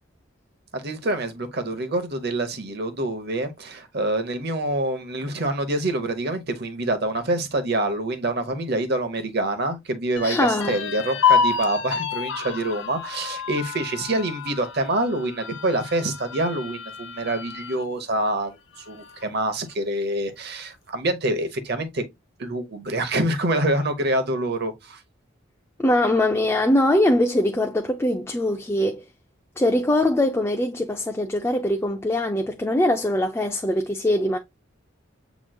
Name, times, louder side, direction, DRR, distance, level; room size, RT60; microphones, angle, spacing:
voice 1, 0.7-22.0 22.4-25.0, right 1 dB, 55° right, 0.9 m, -26 dB
sound 1, 10.2-17.8 18.3-18.4 18.7-19.4, left 6 dB, 65° left, 0.6 m, -28 dB
voice 2, 10.2-10.8 25.8-29.0 29.6-34.4, left 1 dB, 10° left, 0.4 m, -22 dB
7.5 x 3.0 x 2.2 m
head